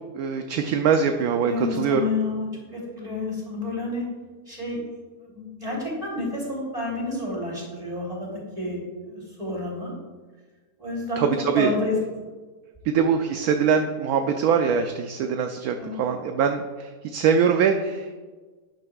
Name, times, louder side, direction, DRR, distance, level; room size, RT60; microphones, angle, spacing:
voice 1, 0.1-2.0 11.2-11.3 11.5-11.7 12.9-18.1, right 6 dB, 70° right, 6 dB, 1.0 m, -23 dB
voice 2, 1.4-4.0 4.5-4.8 5.2-8.3 8.5-9.9 10.8-11.2 11.5-12.0 15.8-16.0, left 2 dB, 20° right, -4 dB, 3.4 m, -30 dB
11.5 x 9.7 x 2.4 m, 1.4 s
omnidirectional pair, 1.7 m